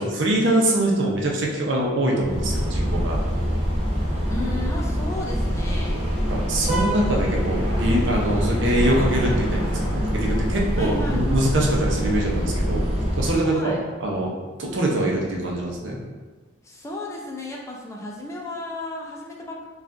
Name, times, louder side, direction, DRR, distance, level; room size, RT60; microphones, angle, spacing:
voice 1, 0.0-3.2 6.3-12.9 13.2-14.3 14.6-16.0, right 1 dB, 65° right, -2 dB, 0.7 m, -23 dB
sound 1, 2.2-13.4, equal, 30° right, 0.9 m, -24 dB
voice 2, 4.3-6.0 10.8-11.5 13.5-13.8 16.6-19.6, left 2 dB, 15° left, -2 dB, 0.4 m, -34 dB
5.0 x 2.4 x 2.5 m, 1.3 s
head